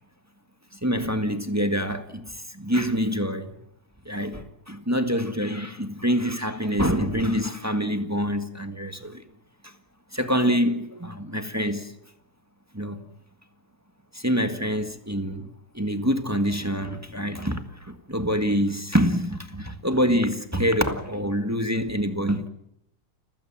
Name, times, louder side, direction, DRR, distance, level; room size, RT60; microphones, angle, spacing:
voice 1, 0.8-3.5 4.0-9.2 9.6-9.7 10.1-11.9 12.7-13.0 14.1-22.5, equal, 10° right, 1.5 m, -26 dB
29.5 x 16.0 x 7.3 m
omnidirectional pair, 2.3 m